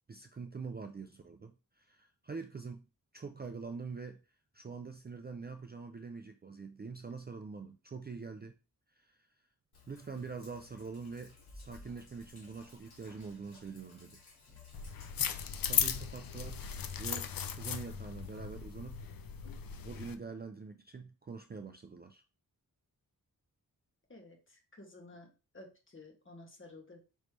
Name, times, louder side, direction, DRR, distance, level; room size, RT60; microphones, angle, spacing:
voice 1, 0.1-2.9 3.1-4.2 4.5-8.5 9.0-9.3 9.9-14.2 15.6-16.6 17.0-19.0 19.8-22.2, right 4 dB, 30° right, 6 dB, 0.4 m, -45 dB
Sink (filling or washing), 9.7-19.4, left 2 dB, 85° left, 2.0 m, -58 dB
sound 1, 14.7-20.1, left 8 dB, 70° left, 0.6 m, -36 dB
voice 2, 24.1-25.3 25.5-27.0, left 2 dB, 35° left, 2 dB, 1.5 m, -53 dB
5.2 x 3.1 x 3.3 m, 0.32 s
wide cardioid pair, 110°, 37 cm